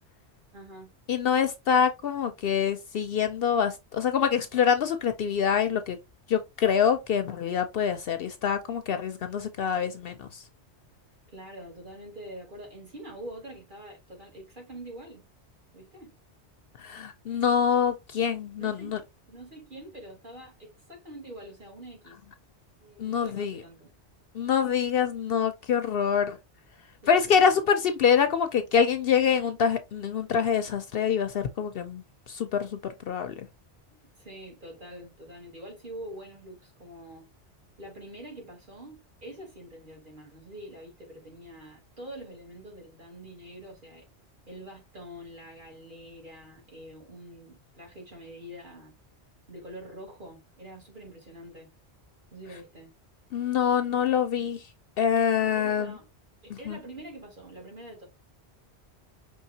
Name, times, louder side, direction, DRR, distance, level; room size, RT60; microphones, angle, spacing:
voice 1, 0.5-0.9 1.8-1.9 11.3-15.2 15.7-16.2 18.6-22.2 22.8-23.9 27.0-27.6 33.9-37.3 37.8-44.1 44.5-48.9 49.5-51.7 52.3-52.9 55.5-56.1 56.4-58.1, right 1 dB, 45° right, 2.2 m, -45 dB
voice 2, 1.1-6.0 6.3-10.4 16.8-19.0 23.0-23.6 24.3-26.4 27.1-32.0 32.3-32.8 33.1-33.5 53.3-54.6 55.0-55.9 56.7-56.8, left 7 dB, 65° left, 0.7 m, -25 dB
5.5 x 3.2 x 2.7 m
omnidirectional pair, 1.1 m